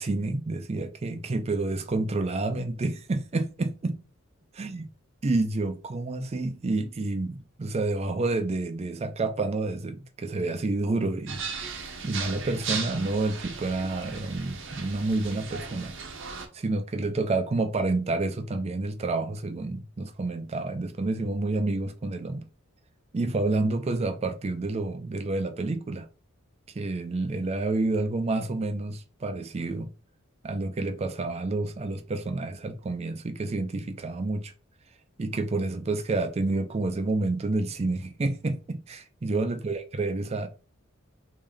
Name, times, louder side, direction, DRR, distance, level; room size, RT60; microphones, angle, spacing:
voice 1, 0.0-4.0 4.6-4.9 5.2-11.4 12.0-15.9 16.5-22.4 23.1-26.1 26.8-29.9 30.4-34.5 35.2-40.5, right 2 dB, 30° right, 0.4 m, -29 dB
sound 1, 11.3-16.5, right 5 dB, 60° right, 0.7 m, -36 dB
3.3 x 2.7 x 3.5 m
head